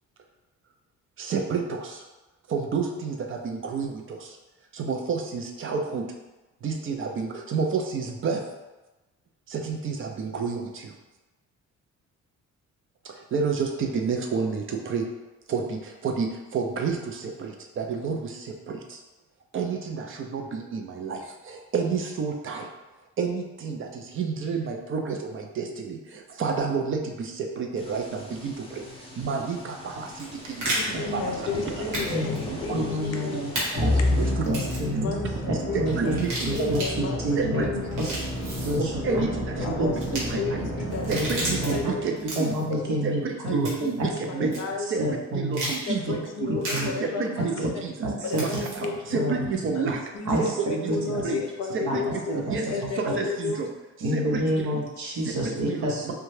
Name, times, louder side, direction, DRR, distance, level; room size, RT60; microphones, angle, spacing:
voice 1, 1.2-2.0 2.5-4.4 4.7-6.0 6.6-8.4 9.5-10.9 13.0-15.1 15.5-19.0 19.5-22.7 23.2-31.3 31.7-31.8 32.5-33.0 34.2-34.4 34.9-35.0 35.7-36.8 37.4-37.9 38.8-40.6 41.1-42.1 42.4-42.5 43.0-44.5 44.9-45.0 45.3-46.6 47.0-48.1 48.3-48.5 48.8-50.0 50.4-50.9 51.2-51.4 51.7-52.7 53.0-53.7 54.1-54.4 54.7-54.8 55.6-56.1, right 5 dB, 45° right, 3 dB, 0.5 m, -30 dB
sound 1, 27.7-34.3, left 1 dB, 20° left, 0.6 m, -40 dB
sound 2, 30.0-30.8 31.9-32.1 32.3-32.4 33.5-33.7 34.4-34.9 36.1-36.9 37.8-38.8 39.9-40.2 40.9-41.7 42.2-42.6 43.6-44.0 44.5-44.6 45.5-45.8 46.6-46.8 48.3-48.7, right 1 dB, 90° right, 1.1 m, -32 dB
voice 2, 30.8-34.3 34.8-36.1 36.5-37.2 37.5-38.8 39.1-39.2 39.6-40.0 40.3-41.4 41.7-43.1 43.4-44.9 45.9-47.8 48.2-49.5 49.7-53.7, left 4 dB, 60° left, 3 dB, 0.5 m, -34 dB
voice 3, 32.1-32.5 32.7-34.2 34.4-35.1 35.8-37.7 38.0-38.1 38.6-39.3 39.6-39.9 41.1-41.8 42.4-43.7 44.0-44.1 44.4-44.5 45.0-45.7 46.5-46.9 48.0-48.4 49.1-49.9 50.2-50.5 50.9-51.2 51.8-52.0 52.3-53.1 54.0-56.1, right 1 dB, 70° right, -1 dB, 0.8 m, -29 dB
Musical instrument, 33.8-42.3, left 1 dB, 10° right, 0.8 m, -30 dB
2.7 x 2.2 x 3.1 m, 1.1 s
cardioid pair, 90°, 30 cm